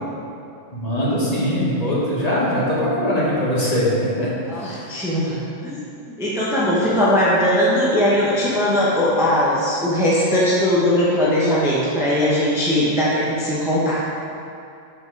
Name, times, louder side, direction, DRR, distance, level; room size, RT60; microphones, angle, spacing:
voice 1, 0.7-4.3 4.6-4.9, equal, 30° left, -8 dB, 1.4 m, -21 dB
voice 2, 4.5-5.4 5.6-5.8 6.2-14.0, left 1 dB, 5° right, -7 dB, 0.8 m, -19 dB
6.6 x 4.3 x 4.5 m, 2.6 s
omnidirectional pair, 1.3 m